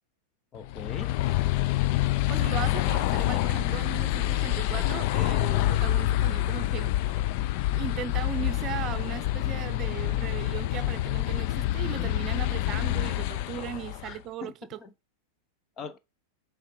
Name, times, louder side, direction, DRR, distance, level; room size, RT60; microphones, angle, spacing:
voice 1, 0.5-1.1 11.6-11.7 12.0-12.1 14.0-14.5 14.8-14.9 15.8-16.0, left 5 dB, 35° left, 0.9 m, -41 dB
sound 1, 0.6-14.2, left 14 dB, 55° left, 0.4 m, -27 dB
voice 2, 2.3-6.9 7.7-14.8, right 11 dB, 40° right, 0.6 m, -37 dB
6.5 x 3.8 x 4.5 m
hypercardioid pair, 115°, 0 cm